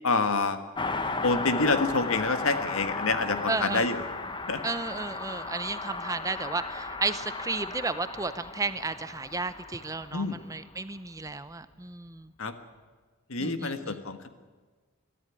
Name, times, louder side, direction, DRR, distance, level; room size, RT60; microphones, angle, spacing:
voice 1, 0.0-0.6 1.2-4.0 4.5-4.6 10.1-10.4 12.4-12.5 13.3-14.3, left 3 dB, 75° left, 8 dB, 1.6 m, -27 dB
Car passing by, 0.7-10.7 11.0-11.1, left 3 dB, 20° left, 1.1 m, -35 dB
voice 2, 3.5-3.8 4.6-12.3 13.4-13.9, right 3 dB, 15° right, 12 dB, 0.7 m, -33 dB
22.0 x 13.5 x 10.0 m, 1.4 s
head